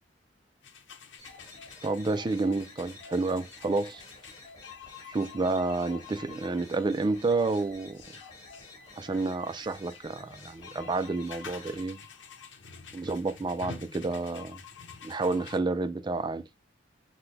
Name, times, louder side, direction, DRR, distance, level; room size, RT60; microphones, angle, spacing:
sound 1, 0.6-15.6, left 6 dB, 75° left, 0.8 m, -49 dB
sound 2, 1.2-11.8, left 3 dB, 20° left, 2.0 m, -51 dB
voice 1, 1.8-4.0 5.1-8.0 9.0-12.0 12.9-14.6 15.0-16.4, right 3 dB, 25° right, 0.4 m, -30 dB
5.8 x 2.2 x 3.3 m
head